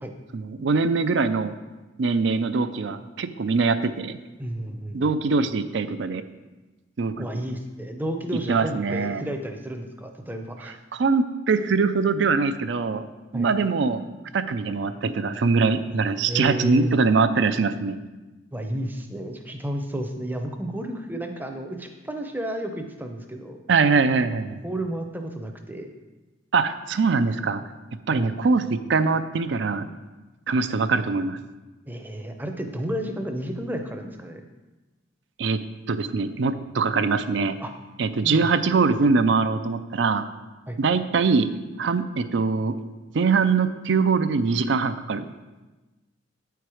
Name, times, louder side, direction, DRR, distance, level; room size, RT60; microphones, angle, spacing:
voice 1, 0.3-1.5 2.0-4.2 4.9-6.2 7.0-7.4 8.5-9.2 10.9-13.0 13.3-14.0 14.3-18.0 23.7-24.6 26.5-27.6 28.1-29.9 30.5-31.4 35.4-35.6 35.9-37.6 38.0-40.2 40.8-41.5 41.8-42.7 43.1-45.3, right 4 dB, 65° right, 11 dB, 0.4 m, -22 dB
voice 2, 4.4-5.1 7.2-10.8 13.3-13.5 16.3-17.0 18.5-23.6 24.6-25.9 28.1-28.4 31.9-34.4 37.6-37.7 38.2-38.5 40.7-40.8, right 1 dB, 10° right, 4 dB, 0.6 m, -32 dB
9.0 x 4.6 x 4.8 m, 1.2 s
head